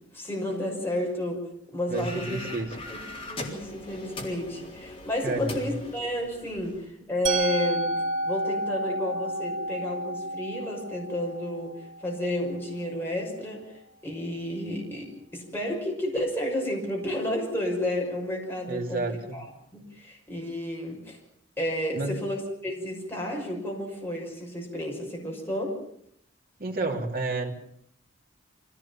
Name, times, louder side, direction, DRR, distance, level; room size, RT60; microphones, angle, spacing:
voice 1, 0.1-1.4 1.7-2.4 2.9-3.0 3.3-7.9 8.2-11.7 12.0-13.6 14.0-19.0 19.3-19.4 19.7-21.2 21.6-22.4 22.6-25.7, left 1 dB, 10° left, -2 dB, 6.1 m, -31 dB
sound 1, 1.9-6.9, left 2 dB, 30° left, 3.8 m, -40 dB
voice 2, 1.9-2.8 5.2-5.7 18.7-19.4 21.9-22.1 26.6-27.5, right 3 dB, 50° right, 1 dB, 3.0 m, -30 dB
Musical instrument, 7.2-13.1, right 1 dB, 80° right, 3.0 m, -31 dB
24.5 x 17.0 x 7.3 m, 0.71 s
head